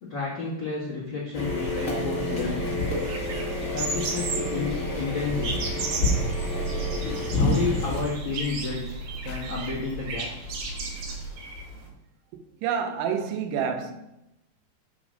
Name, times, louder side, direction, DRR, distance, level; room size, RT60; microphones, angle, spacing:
voice 1, 0.0-2.7 3.7-5.6 7.4-10.5, left 4 dB, 90° left, 1.0 m, -31 dB
sound 1, 1.3-8.0, left 1 dB, 55° left, 0.8 m, -28 dB
sound 2, 2.0-11.9, right 2 dB, 75° left, 2.3 m, -38 dB
sound 3, 2.2-11.9, right 3 dB, 60° right, 2.6 m, -36 dB
voice 2, 12.6-13.9, right 7 dB, 90° right, 3.2 m, -28 dB
6.0 x 5.0 x 6.2 m
omnidirectional pair, 5.2 m